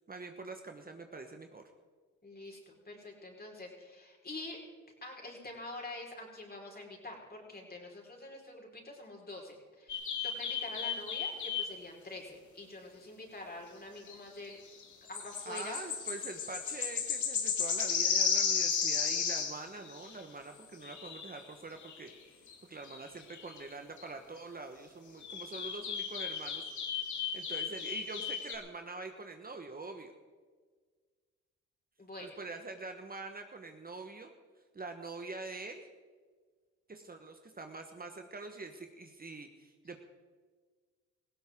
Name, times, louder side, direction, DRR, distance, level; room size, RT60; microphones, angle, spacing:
voice 1, 0.1-1.6 15.4-22.4 22.7-30.1 32.2-34.3 34.7-35.9 36.9-40.0, right 3 dB, 30° right, 5 dB, 1.3 m, -45 dB
voice 2, 2.2-4.6 5.0-14.6 15.1-15.8 32.0-32.3, left 2 dB, 30° left, 0 dB, 4.8 m, -46 dB
sound 1, 9.9-11.8 14.1-14.2 14.5-14.6 14.8-20.2 20.8-21.4 21.8-22.1 22.5-22.6 22.8-23.7 24.0-24.1 25.2-28.6, left 6 dB, 65° left, 2.4 m, -34 dB
18.5 x 16.0 x 3.8 m, 1.5 s
supercardioid pair, 65°, 32 cm